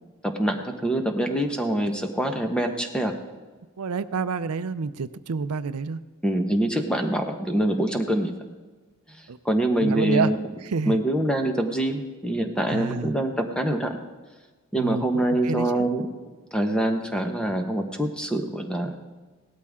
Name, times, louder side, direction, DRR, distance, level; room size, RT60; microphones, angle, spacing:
voice 1, 0.2-3.1 6.2-8.3 9.4-10.5 10.9-14.0 14.7-16.1 16.5-18.9, right 1 dB, 5° left, 4 dB, 1.2 m, -25 dB
voice 2, 3.8-6.0 9.3-9.4 9.8-10.3 10.7-11.0 12.7-13.1 14.8-15.9, right 5 dB, 90° right, 13 dB, 0.5 m, -28 dB
17.5 x 13.0 x 3.7 m, 1.3 s
head